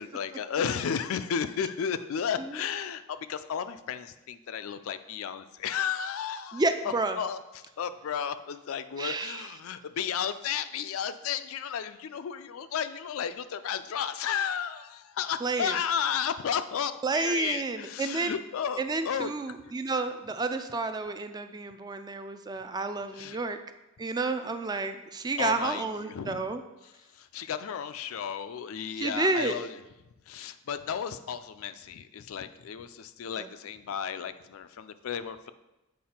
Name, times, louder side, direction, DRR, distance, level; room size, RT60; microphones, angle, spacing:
voice 1, 0.0-19.4 23.1-23.4 25.4-26.4 26.8-29.7 30.3-35.5, left 7 dB, 70° left, 11 dB, 0.4 m, -33 dB
voice 2, 6.5-7.2 9.0-9.4 15.4-15.7 17.0-18.4 18.8-23.6 24.0-26.6 29.0-29.6 33.4-33.5, right 3 dB, 20° right, 8 dB, 0.3 m, -30 dB
7.5 x 4.6 x 4.3 m, 1.0 s
head